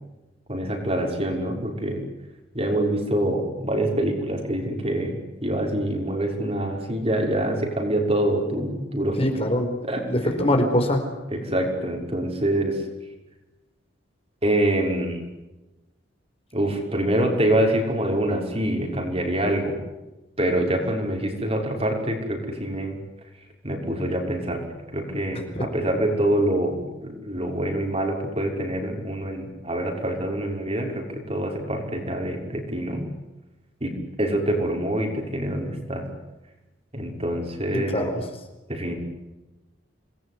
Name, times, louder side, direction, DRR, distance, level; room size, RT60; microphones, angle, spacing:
voice 1, 0.5-2.0 2.5-9.3 9.8-10.6 11.3-12.8 14.4-15.2 16.5-19.8 20.4-23.0 23.6-24.6 24.9-33.1 33.8-36.1 36.9-38.1 38.7-38.9, right 1 dB, 30° right, 2 dB, 6.0 m, -25 dB
voice 2, 9.2-11.0 25.5-25.6 37.7-38.2, left 1 dB, 30° left, 4 dB, 4.5 m, -23 dB
27.5 x 21.0 x 9.8 m, 1.1 s
head